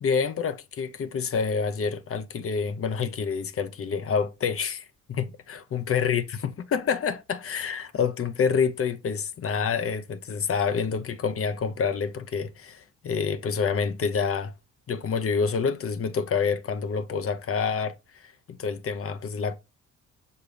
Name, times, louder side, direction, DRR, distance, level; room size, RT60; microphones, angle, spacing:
voice 1, 0.0-14.5 14.9-17.9 18.2-19.6, left 6 dB, 45° left, 0.9 m, -27 dB
6.7 x 4.4 x 3.3 m
cardioid pair, 90°, 30 cm